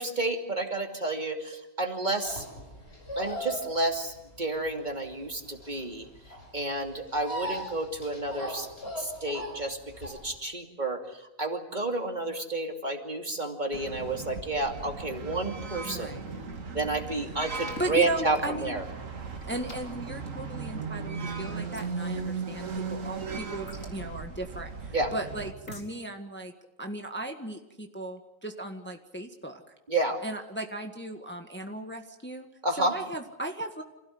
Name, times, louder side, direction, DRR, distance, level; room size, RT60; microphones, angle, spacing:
voice 1, 0.0-2.5 3.2-6.1 6.5-8.7 9.0-16.1 16.7-18.8 24.9-25.1 29.9-30.2 32.6-32.9, right 2 dB, 35° right, 4 dB, 2.9 m, -30 dB
sound 1, 2.2-10.4, equal, 50° left, 7.6 m, -39 dB
sound 2, 13.7-25.5, right 5 dB, 80° right, 2.2 m, -37 dB
voice 2, 15.8-16.3 17.8-18.8 19.5-26.5 26.8-29.6 30.2-32.5 32.8-33.8, right 1 dB, 10° left, 4 dB, 1.6 m, -36 dB
sound 3, 17.7-17.9 19.7-20.1 21.7-21.9 23.7-24.0 25.7-25.9, left 2 dB, 80° left, 4.0 m, -44 dB
27.5 x 16.5 x 9.6 m, 0.94 s
omnidirectional pair, 1.3 m